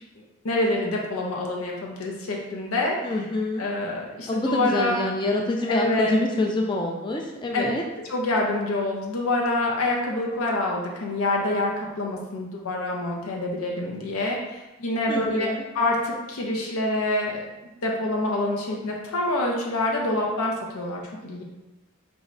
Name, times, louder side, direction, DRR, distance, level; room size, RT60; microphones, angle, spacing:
voice 1, 0.4-3.1 3.6-5.0 5.7-6.2 7.5-7.7 8.1-15.5 15.7-17.4 17.8-21.4, left 2 dB, 85° left, -1 dB, 0.6 m, -26 dB
voice 2, 3.0-3.7 4.3-7.8 15.1-15.6, left 2 dB, 20° left, 1 dB, 0.4 m, -26 dB
4.7 x 3.1 x 2.6 m, 1.0 s
head